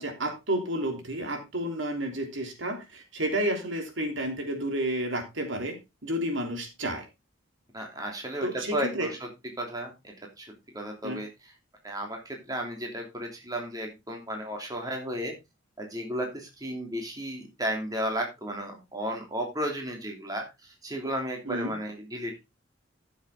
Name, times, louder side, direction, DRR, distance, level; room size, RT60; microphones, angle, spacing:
voice 1, 0.0-5.8 6.0-7.1 8.4-9.1 11.0-11.2 21.4-21.7, right 1 dB, 70° right, 4 dB, 3.3 m, -31 dB
voice 2, 7.7-9.2 9.6-11.5 11.8-15.3 15.8-22.4, equal, 20° right, 1 dB, 3.1 m, -34 dB
14.0 x 7.3 x 3.8 m, 0.24 s
head